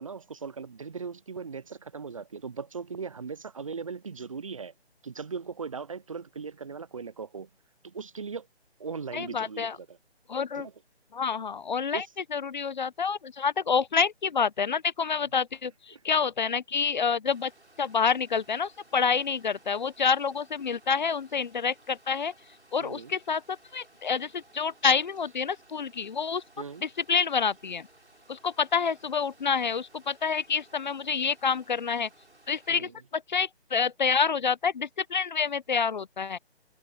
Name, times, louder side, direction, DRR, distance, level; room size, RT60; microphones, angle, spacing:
voice 1, 0.0-4.7 5.0-7.5 7.8-8.5 8.8-10.0 10.5-10.7 11.9-12.0 15.9-16.0 22.8-23.1 26.6-26.8 32.7-32.9, right 5 dB, 30° right, 0.6 m, -38 dB
voice 2, 9.1-9.8 10.3-10.7 11.1-12.0 12.3-17.5 17.8-22.3 22.7-26.4 26.8-27.9 28.3-32.1 32.5-36.4, left 6 dB, 45° left, 1.0 m, -28 dB
sound 1, 17.2-32.7, right 1 dB, 90° right, 6.0 m, -59 dB
figure-of-eight pair, 150°, 32 cm